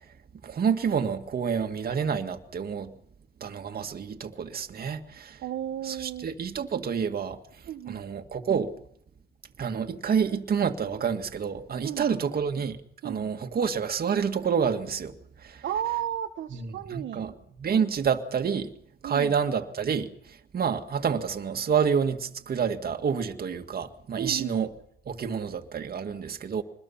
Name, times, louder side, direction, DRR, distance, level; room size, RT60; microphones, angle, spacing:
voice 1, 0.4-2.9 3.4-5.4 5.8-7.4 7.9-8.7 9.6-12.8 13.0-15.1 15.4-15.6 16.5-18.7 19.0-24.7 25.1-26.6, right 6 dB, 50° right, 2.1 m, -28 dB
voice 2, 5.4-6.3 7.7-8.0 11.8-12.1 13.0-13.3 15.6-17.3 19.0-19.3 24.2-24.6, right 11 dB, 70° right, 1.1 m, -33 dB
25.0 x 21.0 x 5.8 m
cardioid pair, 90°, 20 cm